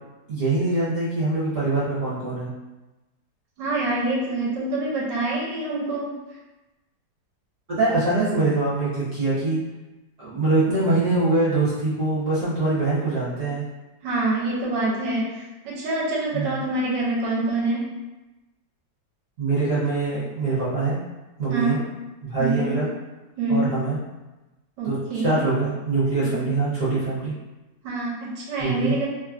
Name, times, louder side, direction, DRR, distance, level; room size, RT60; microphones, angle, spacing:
voice 1, 0.3-2.5 7.7-9.6 10.2-13.6 16.3-16.5 19.4-21.0 21.4-21.8 22.2-22.9 23.5-24.0 24.8-24.9 25.2-27.3 28.6-29.1, right 3 dB, 55° right, -9 dB, 0.9 m, -23 dB
voice 2, 3.6-6.1 14.0-17.9 21.5-21.8 22.4-22.8 23.4-23.7 24.8-25.4 26.2-26.5 27.8-29.1, right 2 dB, 75° right, -4 dB, 1.2 m, -26 dB
3.0 x 2.3 x 2.4 m, 1.1 s
omnidirectional pair, 2.1 m